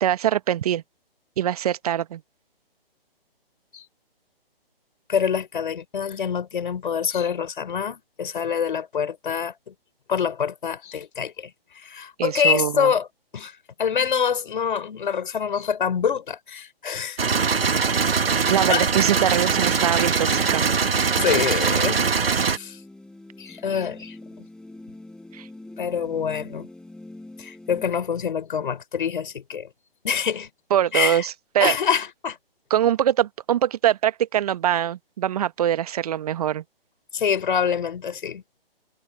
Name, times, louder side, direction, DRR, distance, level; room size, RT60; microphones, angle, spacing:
voice 1, 0.0-0.8 1.4-2.2 12.2-12.9 18.5-20.7 25.3-25.5 30.7-31.8 32.7-36.6, right 11 dB, 40° right, 1.3 m, -23 dB
voice 2, 5.1-9.7 10.1-11.5 11.8-13.1 13.3-13.5 13.8-17.2 18.7-18.9 21.2-22.0 22.5-22.8 23.4-24.4 25.8-26.7 27.4-29.7 30.0-30.5 30.9-31.2 31.6-32.4 37.1-38.4, left 7 dB, 55° left, 6.3 m, -25 dB
sound 1, 17.2-22.6, right 5 dB, 70° right, 2.0 m, -22 dB
sound 2, 19.1-27.9, left 2 dB, ahead, 6.9 m, -45 dB
figure-of-eight pair, 140°, 30 cm